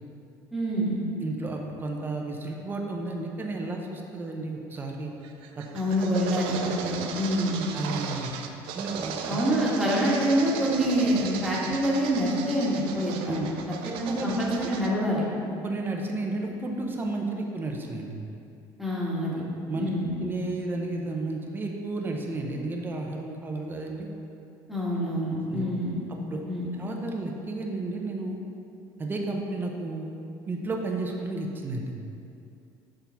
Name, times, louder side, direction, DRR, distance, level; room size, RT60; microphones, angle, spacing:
voice 1, 0.5-1.0 5.7-7.7 9.3-13.3 14.0-15.2 18.8-19.4 19.7-20.2 24.7-26.0 26.5-26.7, equal, ahead, -7 dB, 1.7 m, -26 dB
voice 2, 1.2-5.1 5.6-5.7 7.7-8.3 8.7-9.4 13.3-13.5 14.0-14.7 15.6-18.1 19.7-19.9 20.2-24.1 25.5-25.6 26.3-26.4 26.8-28.4 29.0-30.1 30.5-31.9, right 2 dB, 20° right, 1 dB, 0.8 m, -32 dB
sound 1, 5.2-14.9, right 7 dB, 75° right, 0.5 m, -36 dB
6.9 x 3.9 x 5.8 m, 2.6 s
cardioid pair, 130°, 9 cm